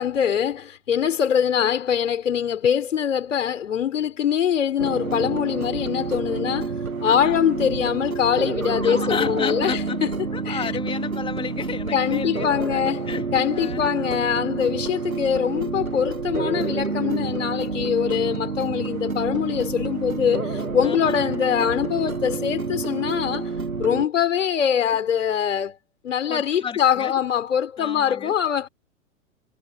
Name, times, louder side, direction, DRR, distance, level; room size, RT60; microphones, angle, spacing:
voice 1, 0.0-6.7 7.0-10.1 10.5-10.6 11.9-23.5 23.8-25.8 26.0-28.7, left 8 dB, 65° left, 4.0 m, -23 dB
sound 1, 4.8-24.1, right 4 dB, 85° right, 1.7 m, -28 dB
voice 2, 7.0-7.4 8.8-10.0 10.3-13.3 13.5-13.9 20.8-21.1 26.3-27.2 27.8-28.3, left 6 dB, 10° left, 2.8 m, -32 dB
figure-of-eight pair, 100°, 41 cm